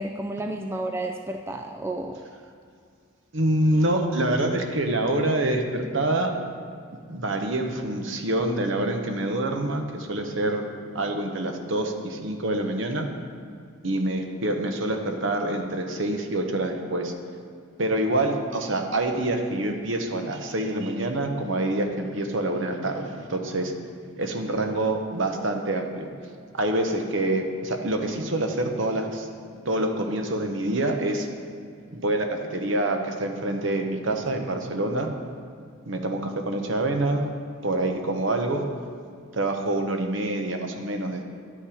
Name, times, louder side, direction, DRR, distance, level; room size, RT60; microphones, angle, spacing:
voice 1, 0.0-2.2, right 1 dB, 10° right, 4 dB, 0.3 m, -31 dB
voice 2, 3.3-6.3 7.1-10.6 10.9-13.1 13.8-17.1 17.8-23.7 24.2-26.1 26.5-29.3 29.6-31.3 31.9-35.1 35.9-37.3 37.6-38.6 39.3-41.3, right 1 dB, 65° right, 4 dB, 1.0 m, -26 dB
10.5 x 8.8 x 5.0 m, 2.3 s
head